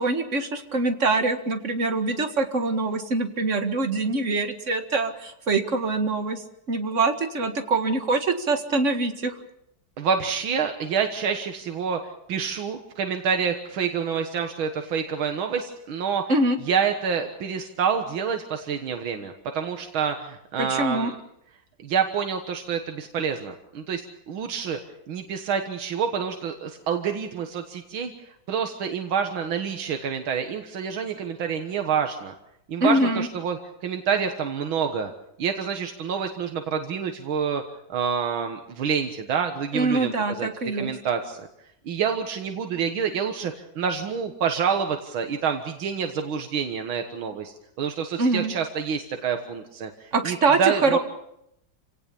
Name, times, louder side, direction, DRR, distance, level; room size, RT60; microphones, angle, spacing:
voice 1, 0.0-6.4 6.7-9.3 16.3-16.6 20.6-21.1 32.8-33.3 39.7-40.9 48.2-48.5 50.1-51.0, right 3 dB, 40° right, 6 dB, 2.1 m, -24 dB
voice 2, 10.0-12.0 12.3-16.2 16.7-21.1 21.8-24.8 25.1-32.3 32.7-35.1 35.4-37.6 37.9-40.1 40.4-41.5 41.9-51.0, right 6 dB, 90° right, 5 dB, 2.2 m, -27 dB
28.0 x 17.5 x 7.0 m, 0.78 s
omnidirectional pair, 2.1 m